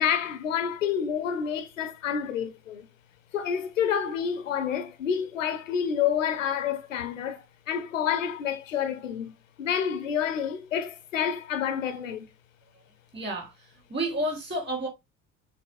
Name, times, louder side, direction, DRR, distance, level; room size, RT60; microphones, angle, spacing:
voice 1, 0.0-2.9 3.3-12.3, left 8 dB, 85° left, 0.6 m, -29 dB
voice 2, 13.1-13.5 13.9-14.9, right 1 dB, 30° right, 3.0 m, -30 dB
6.6 x 3.3 x 2.4 m
figure-of-eight pair, 50°, 38 cm